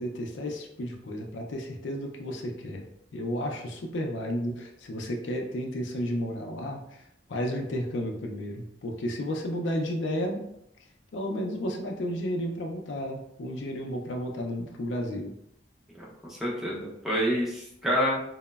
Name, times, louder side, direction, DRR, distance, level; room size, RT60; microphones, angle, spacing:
voice 1, 0.0-2.8 3.1-7.0 7.3-10.4 11.1-15.3, equal, 70° left, 2 dB, 0.4 m, -32 dB
voice 2, 16.3-18.2, equal, ahead, -5 dB, 0.5 m, -28 dB
2.9 x 2.0 x 2.2 m, 0.78 s
head